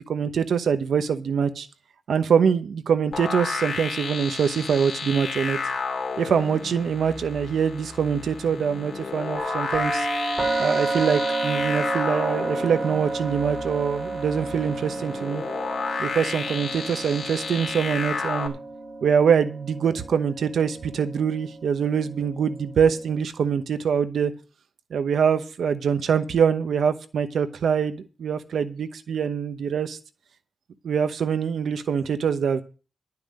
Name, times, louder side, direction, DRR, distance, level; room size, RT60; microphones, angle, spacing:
voice 1, 0.1-1.7 2.1-5.6 6.2-10.1 10.6-15.4 16.0-18.6 19.0-24.3 24.9-30.0 30.8-32.6, right 7 dB, 75° right, 10 dB, 1.0 m, -24 dB
sound 1, 3.1-18.5, left 4 dB, 55° left, 2.9 m, -32 dB
sound 2, 9.3-23.2, right 3 dB, 30° right, 3.8 m, -31 dB
12.0 x 5.9 x 8.8 m, 0.35 s
wide cardioid pair, 170°, 0 cm